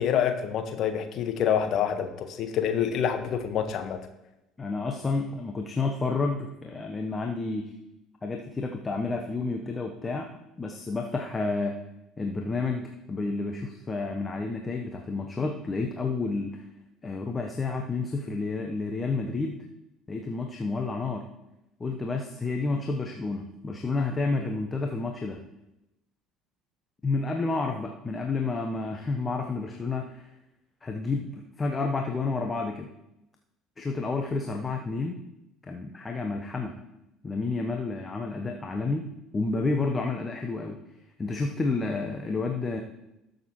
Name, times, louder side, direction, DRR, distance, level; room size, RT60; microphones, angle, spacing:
voice 1, 0.0-4.0, left 8 dB, 50° left, 7 dB, 1.4 m, -27 dB
voice 2, 4.6-7.7 8.2-10.3 10.6-11.8 12.2-16.6 17.0-19.6 20.1-21.2 21.8-25.4 27.0-30.3 30.8-32.9 33.8-35.2 35.7-36.7 37.2-39.0 39.3-40.8 41.2-42.8, left 3 dB, 25° left, 3 dB, 1.0 m, -30 dB
19.5 x 6.7 x 3.1 m, 0.92 s
figure-of-eight pair, 60°, 0 cm